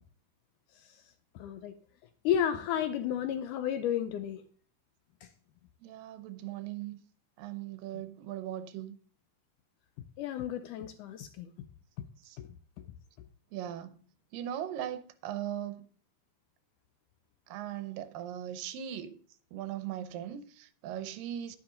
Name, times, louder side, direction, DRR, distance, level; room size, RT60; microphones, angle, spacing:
voice 1, 1.4-1.8 2.3-4.5 10.2-11.5 12.4-12.5, left 9 dB, 75° left, 2.0 m, -32 dB
voice 2, 5.8-7.0 7.4-9.0 12.3-12.4 13.5-13.9 14.3-15.8 17.5-19.2 19.5-21.6, right 11 dB, 85° right, 2.5 m, -39 dB
10.5 x 10.0 x 3.9 m
omnidirectional pair, 3.9 m